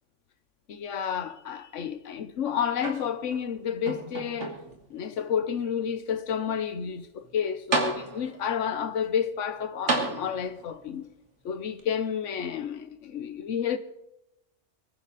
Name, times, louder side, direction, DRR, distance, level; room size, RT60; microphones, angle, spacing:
voice 1, 0.7-4.6 4.9-11.1 11.4-13.8, left 8 dB, 85° left, 1.3 m, -30 dB
sound 1, 2.8-3.5 3.9-4.9 5.6-5.7 7.2-7.3 7.7-8.5 9.9-10.7 11.8-11.9, right 3 dB, 75° right, 2.6 m, -31 dB
24.5 x 10.5 x 4.1 m
omnidirectional pair, 1.2 m